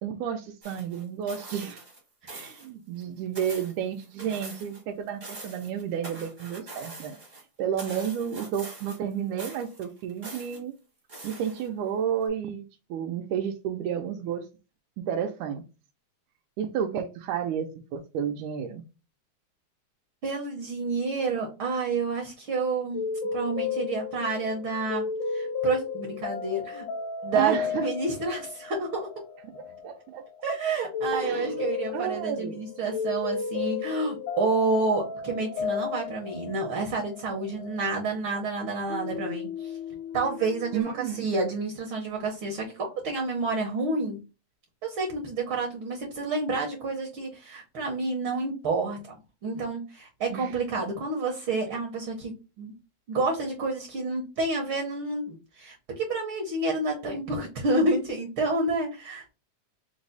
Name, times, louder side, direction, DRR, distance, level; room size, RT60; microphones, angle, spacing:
voice 1, 0.0-1.8 2.3-7.2 7.6-10.7 11.2-14.5 15.0-15.6 16.6-18.8 27.3-27.9 29.5-30.2 31.1-31.6 31.9-32.6 40.7-41.3 50.3-50.6, right 8 dB, 85° right, 2 dB, 2.0 m, -31 dB
sound 1, 0.6-2.0 2.3-2.7 3.0-4.8 5.1-7.4 7.8-9.1 9.4-10.6 11.1-11.9 12.3-12.4, right 2 dB, 45° right, 0.6 m, -43 dB
voice 2, 20.2-23.0 23.3-26.9 27.2-29.1 30.4-39.8 40.1-44.2 44.8-52.7 53.1-59.3, right 3 dB, 65° right, 1 dB, 1.2 m, -29 dB
sound 2, 22.9-38.6 38.9-40.8, left 5 dB, 90° left, 2.3 m, -34 dB
5.2 x 2.0 x 3.9 m, 0.30 s
omnidirectional pair, 3.4 m